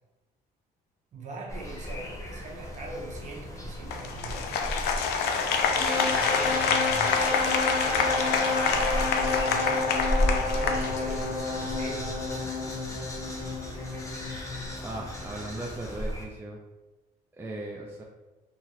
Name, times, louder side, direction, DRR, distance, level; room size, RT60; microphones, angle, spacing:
voice 1, 1.1-4.8 5.7-10.0 10.4-12.1, right 2 dB, 45° right, -1 dB, 0.8 m, -42 dB
sound 1, 1.5-16.3, equal, 20° left, 0.7 m, -35 dB
Applause, 3.9-11.5, left 5 dB, 75° left, 0.4 m, -27 dB
sound 2, 5.8-15.6, left 3 dB, 35° left, 1.2 m, -31 dB
voice 2, 14.8-16.6 17.4-18.0, right 2 dB, 15° right, -1 dB, 0.4 m, -37 dB
2.7 x 2.5 x 3.0 m, 1.1 s
cardioid pair, 110°, 17 cm